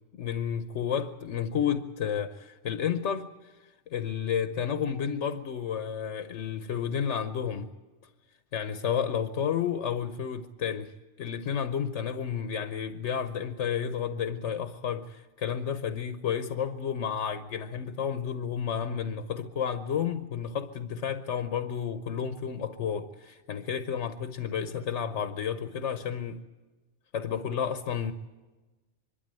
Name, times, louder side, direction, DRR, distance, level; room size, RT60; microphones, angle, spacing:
voice 1, 0.1-7.7 8.5-10.9 11.2-26.4 27.1-28.1, left 8 dB, 75° left, 1.2 m, -31 dB
24.5 x 12.5 x 9.0 m
omnidirectional pair, 1.2 m